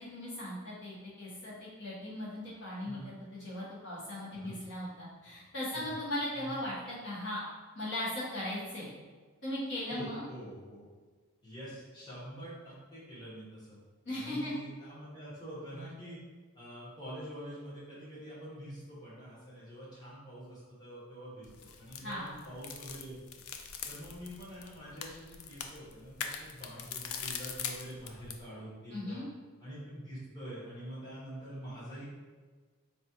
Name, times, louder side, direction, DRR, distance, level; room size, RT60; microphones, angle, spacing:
voice 1, 0.0-7.4 7.7-8.9 9.4-10.2 14.0-14.5 22.0-22.4 28.9-29.3, left 1 dB, 55° left, -8 dB, 1.0 m, -38 dB
voice 2, 9.9-10.8 11.4-13.8 14.1-16.2 16.5-23.2 23.9-29.2 29.6-32.0, equal, 20° left, -10 dB, 1.1 m, -46 dB
sound 1, 21.4-28.4, left 7 dB, 70° left, 0.3 m, -43 dB
4.1 x 2.3 x 2.8 m, 1.4 s
head